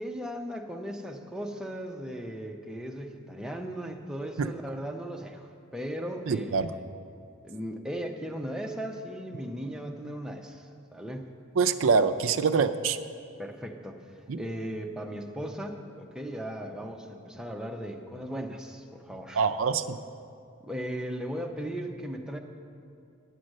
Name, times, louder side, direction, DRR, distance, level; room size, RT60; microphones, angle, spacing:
voice 1, 0.0-6.8 7.4-11.3 13.4-19.5 20.6-22.4, equal, 5° right, 1 dB, 0.6 m, -37 dB
voice 2, 6.3-6.7 11.6-13.0 14.3-14.4 19.4-20.0, right 5 dB, 65° right, 9 dB, 0.5 m, -25 dB
10.5 x 7.6 x 6.4 m, 2.4 s
head